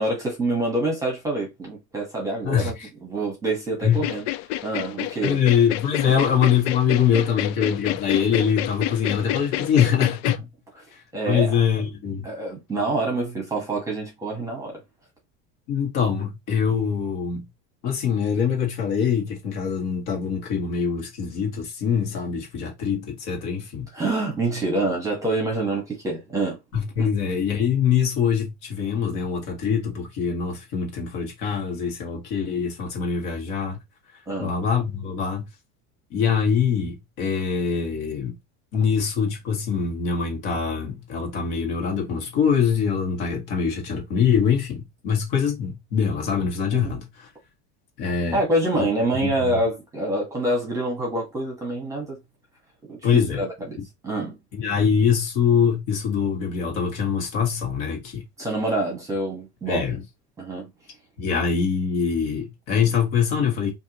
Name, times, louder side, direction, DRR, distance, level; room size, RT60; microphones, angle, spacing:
voice 1, 0.0-2.7 3.0-4.3 4.6-5.4 6.0-6.1 11.1-11.6 12.2-14.8 23.9-26.6 27.0-27.1 34.3-34.5 46.7-47.0 48.3-52.2 52.9-54.4 58.4-59.9 60.4-60.7, right 2 dB, 10° right, 1.3 m, -26 dB
voice 2, 2.4-2.9 3.8-4.1 5.2-10.5 10.9-12.3 15.7-17.5 17.8-23.9 26.7-33.8 34.4-35.4 36.1-38.4 38.7-47.3 48.0-48.4 48.7-48.9 49.2-49.6 53.0-53.4 54.5-58.2 59.7-60.0 61.2-63.7, left 7 dB, 50° left, 1.8 m, -23 dB
sound 1, 3.9-10.4, left 15 dB, 70° left, 0.5 m, -28 dB
4.6 x 2.7 x 2.9 m
cardioid pair, 170°, 32 cm